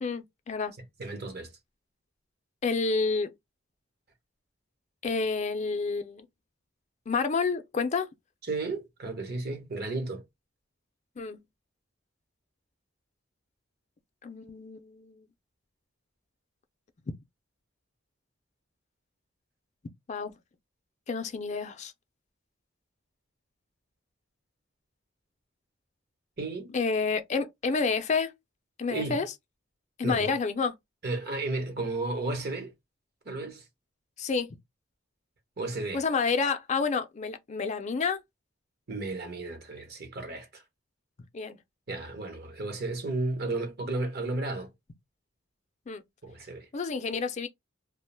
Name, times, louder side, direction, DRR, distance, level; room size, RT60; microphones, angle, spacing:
voice 1, 0.0-0.7 2.6-3.3 5.0-6.3 7.1-8.1 11.2-11.4 14.2-15.2 20.1-20.3 21.1-21.9 26.7-28.3 28.8-29.3 30.0-30.7 34.2-34.6 35.9-38.2 41.3-41.6 45.9-46.0 46.7-47.5, left 4 dB, 35° left, 0.4 m, -29 dB
voice 2, 1.0-1.5 8.5-10.2 26.4-26.7 28.9-29.2 30.0-30.3 31.0-32.7 33.2-33.6 35.6-36.0 38.9-40.6 41.9-44.7 46.2-46.7, right 2 dB, 55° right, 1.0 m, -33 dB
2.5 x 2.1 x 3.2 m
head